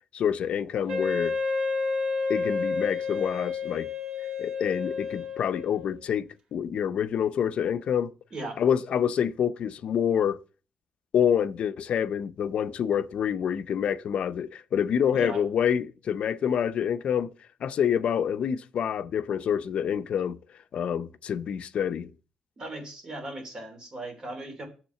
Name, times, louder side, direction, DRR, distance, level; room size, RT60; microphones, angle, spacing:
voice 1, 0.1-1.4 2.3-3.9 4.4-8.1 8.6-10.4 11.1-17.3 17.6-20.4 20.7-22.1, left 8 dB, 60° left, 0.6 m, -27 dB
Wind instrument woodwind instrument, 0.9-6.0, left 4 dB, 55° right, 2.0 m, -30 dB
voice 2, 15.1-15.4 22.6-24.6, right 2 dB, 35° right, 3.2 m, -37 dB
7.1 x 5.9 x 7.5 m
cardioid pair, 145°, 2 cm